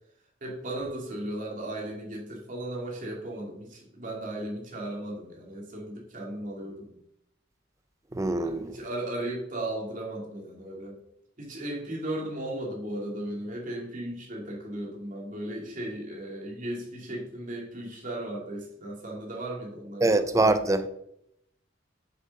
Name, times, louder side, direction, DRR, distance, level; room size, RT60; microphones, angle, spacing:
voice 1, 0.4-6.9 8.4-11.0 11.4-20.2, right 1 dB, 45° right, 2.8 m, -36 dB
voice 2, 8.1-8.8 20.0-20.9, right 2 dB, 15° right, 0.6 m, -24 dB
7.6 x 7.3 x 5.4 m
head